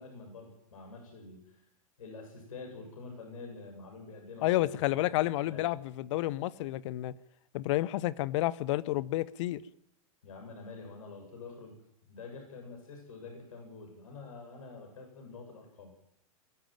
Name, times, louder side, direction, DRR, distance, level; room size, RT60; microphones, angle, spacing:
voice 1, 0.0-1.6 2.0-5.7 10.2-11.8 12.0-15.9, left 3 dB, 75° left, 7.7 m, -47 dB
voice 2, 4.4-7.1 7.5-9.6, left 16 dB, 60° left, 1.0 m, -30 dB
22.5 x 14.5 x 9.1 m
figure-of-eight pair, 90°, 18 cm